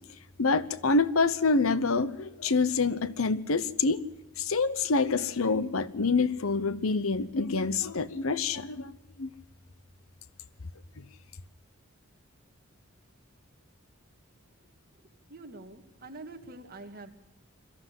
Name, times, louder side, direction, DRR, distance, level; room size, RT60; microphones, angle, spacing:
voice 1, 0.4-4.0 4.4-8.9 9.2-9.3, left 4 dB, 70° left, 16 dB, 0.8 m, -26 dB
voice 2, 15.0-17.1, right 2 dB, 45° right, 5 dB, 2.0 m, -46 dB
22.5 x 14.0 x 10.0 m, 1.0 s
head